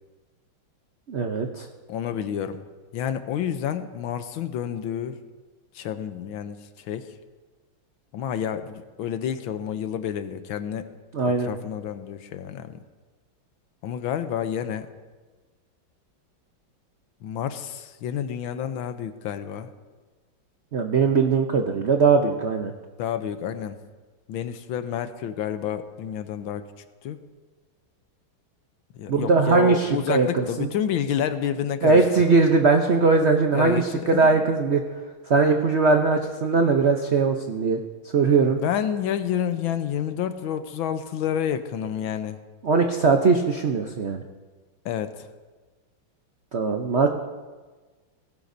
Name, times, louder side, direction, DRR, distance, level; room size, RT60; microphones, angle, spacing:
voice 1, 1.1-1.7 11.1-11.5 20.7-22.7 29.1-30.7 31.8-34.8 35.3-37.8 38.1-38.6 42.6-44.2 46.5-47.1, right 4 dB, 80° right, 4 dB, 0.6 m, -20 dB
voice 2, 1.9-2.6 2.9-5.2 5.7-7.1 8.1-10.9 11.2-12.8 13.8-14.9 17.2-19.7 23.0-23.8 24.3-26.7 27.0-27.2 28.9-32.1 33.5-34.4 38.5-42.4 44.8-45.3, left 9 dB, 75° left, 10 dB, 1.5 m, -29 dB
18.5 x 16.0 x 2.7 m, 1.3 s
omnidirectional pair, 2.3 m